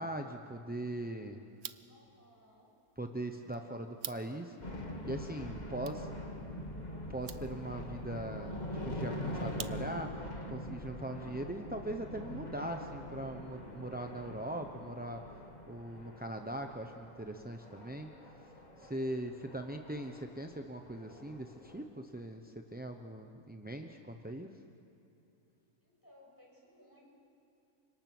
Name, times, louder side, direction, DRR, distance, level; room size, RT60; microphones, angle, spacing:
voice 1, 0.0-1.4 3.0-4.6 5.1-6.1 7.1-15.2 15.7-18.1 18.8-24.5, right 1 dB, 10° right, 4 dB, 0.5 m, -40 dB
sound 1, 1.5-10.2, right 9 dB, 55° right, 0.8 m, -51 dB
voice 2, 1.9-2.7 25.8-27.1, left 1 dB, 10° left, -3 dB, 6.8 m, -61 dB
sound 2, 4.6-21.8, left 1 dB, 25° left, 2.2 m, -44 dB
29.5 x 25.5 x 6.1 m, 2.9 s
omnidirectional pair, 1.7 m